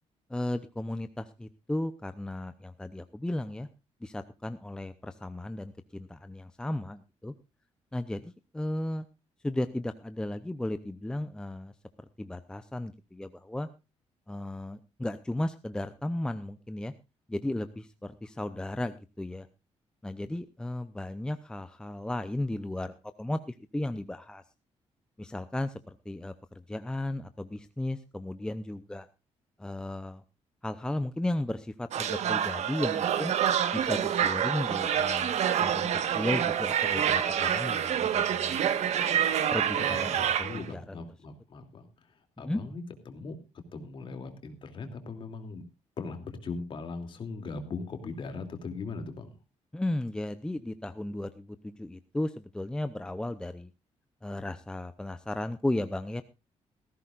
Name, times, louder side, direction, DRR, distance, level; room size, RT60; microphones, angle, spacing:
voice 1, 0.3-3.7 4.0-7.3 7.9-9.1 9.4-11.7 12.0-13.7 14.3-16.9 17.3-19.5 20.0-24.4 25.2-29.1 29.6-30.2 30.6-33.3 33.7-38.6 39.5-41.0 42.4-42.6 49.7-53.7 54.2-56.2, left 1 dB, 5° left, 10 dB, 0.6 m, -35 dB
sound 1, 31.9-40.7, right 9 dB, 75° right, 1.4 m, -27 dB
voice 2, 39.7-41.9 42.4-43.4 43.7-45.6 46.0-49.4, left 4 dB, 45° left, 6 dB, 2.8 m, -39 dB
18.0 x 15.0 x 2.5 m, 0.28 s
cardioid pair, 155°, 12 cm